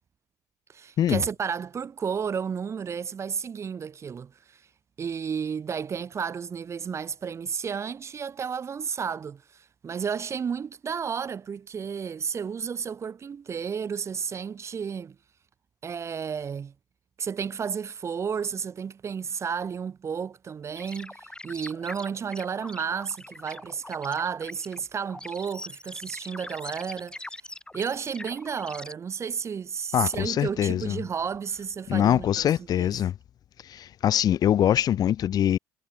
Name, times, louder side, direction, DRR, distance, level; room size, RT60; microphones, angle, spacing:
voice 1, 0.7-4.6 5.0-15.2 15.8-16.7 17.2-27.4 27.7-32.5 32.7-32.9, right 6 dB, 35° right, 0.6 m, -32 dB
sound 1, 20.8-28.9, left 1 dB, 10° left, 6.6 m, -43 dB
voice 2, 29.9-31.0 31.9-33.1 33.6-35.6, left 10 dB, 50° left, 0.9 m, -23 dB
hypercardioid pair, 70°, 8 cm